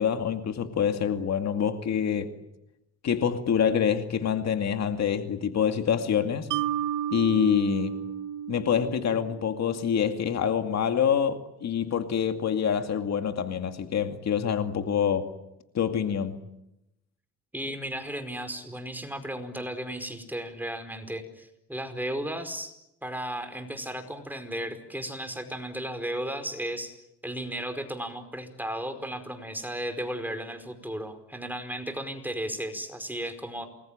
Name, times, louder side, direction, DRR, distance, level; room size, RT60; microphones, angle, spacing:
voice 1, 0.0-2.3 3.0-6.5 7.1-8.0 8.5-15.3 15.7-16.4, left 8 dB, 60° left, 2.4 m, -26 dB
Mallet percussion, 6.5-9.8, right 10 dB, 75° right, 1.1 m, -32 dB
voice 2, 17.5-22.7 23.0-26.9 27.2-33.6, right 1 dB, 5° right, 4.9 m, -35 dB
28.5 x 21.5 x 8.9 m
cardioid pair, 90°, 30 cm